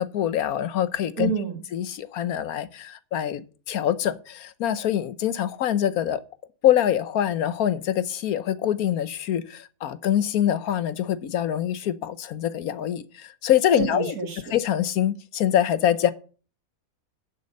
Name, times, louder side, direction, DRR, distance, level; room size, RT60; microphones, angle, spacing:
voice 1, 0.0-1.3 1.7-6.2 6.6-14.1 14.5-16.1, left 10 dB, 75° left, 1.3 m, -24 dB
voice 2, 1.2-1.6 13.8-14.5, right 5 dB, 85° right, 2.5 m, -28 dB
10.5 x 7.8 x 5.4 m
omnidirectional pair, 1.6 m